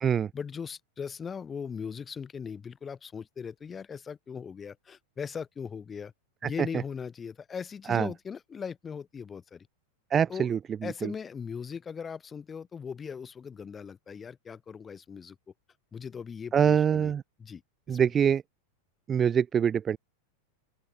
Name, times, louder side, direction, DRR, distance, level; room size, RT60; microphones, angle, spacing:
voice 1, 0.3-6.1 6.4-9.7 10.3-10.5 10.8-15.3 15.9-17.1 17.4-17.6 17.9-18.0 18.3-18.4, left 6 dB, 20° left, 3.4 m, -39 dB
voice 2, 10.1-11.1 16.5-17.2 17.9-18.4 19.1-20.0, right 8 dB, 25° right, 0.4 m, -24 dB
open air
figure-of-eight pair, 90°, 0 cm